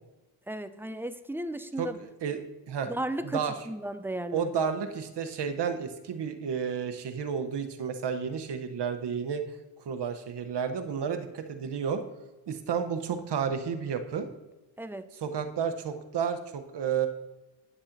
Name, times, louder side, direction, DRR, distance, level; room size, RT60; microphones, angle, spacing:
voice 1, 0.5-2.0 2.9-4.5 14.8-15.1, right 1 dB, 5° right, 11 dB, 0.3 m, -35 dB
voice 2, 1.8-2.4 2.7-2.9 3.2-3.5 4.3-9.6 9.9-12.0 12.5-14.3 15.2-17.1, right 7 dB, 65° right, 8 dB, 0.9 m, -31 dB
10.0 x 7.1 x 2.6 m, 1.1 s
cardioid pair, 65°, 44 cm